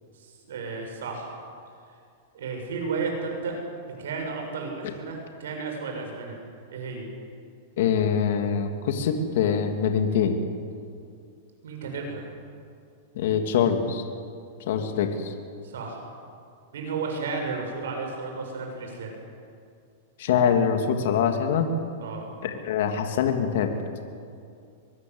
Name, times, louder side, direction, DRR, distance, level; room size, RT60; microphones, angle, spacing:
voice 1, 0.2-1.3 2.3-3.6 4.0-6.4 6.7-7.1 11.6-12.2 15.6-16.0 16.7-19.1 22.0-22.3, right 4 dB, 85° right, 2 dB, 7.7 m, -33 dB
voice 2, 7.8-10.4 13.1-14.0 14.7-15.3 20.2-21.7 22.4-23.7, left 7 dB, 65° left, 5 dB, 2.8 m, -24 dB
23.0 x 23.0 x 8.1 m, 2.3 s
supercardioid pair, 140°, 0 cm